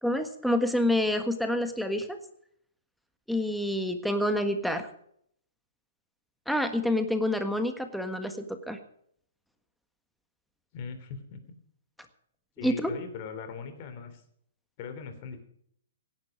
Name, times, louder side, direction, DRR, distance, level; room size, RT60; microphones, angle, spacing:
voice 1, 0.0-2.2 3.3-4.9 6.5-8.8 12.6-12.9, left 1 dB, ahead, 7 dB, 1.5 m, -28 dB
voice 2, 10.7-11.4 12.6-14.2 14.8-15.4, left 6 dB, 45° left, 7 dB, 3.1 m, -40 dB
17.0 x 10.5 x 5.0 m, 0.67 s
hypercardioid pair, 125°, 0 cm